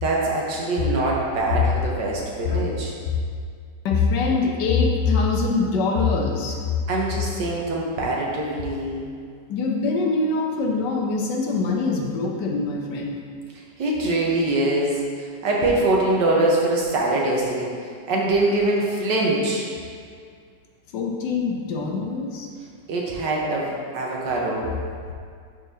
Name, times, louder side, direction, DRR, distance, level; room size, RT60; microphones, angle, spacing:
voice 1, 0.0-2.9 6.9-9.1 13.8-15.0 15.4-17.7 18.1-19.7 22.9-24.7, right 2 dB, 75° right, -2 dB, 1.6 m, -23 dB
voice 2, 3.8-6.6 9.5-13.2 20.9-22.5, left 4 dB, 75° left, 0 dB, 1.4 m, -23 dB
11.0 x 4.2 x 2.7 m, 2.1 s
omnidirectional pair, 1.9 m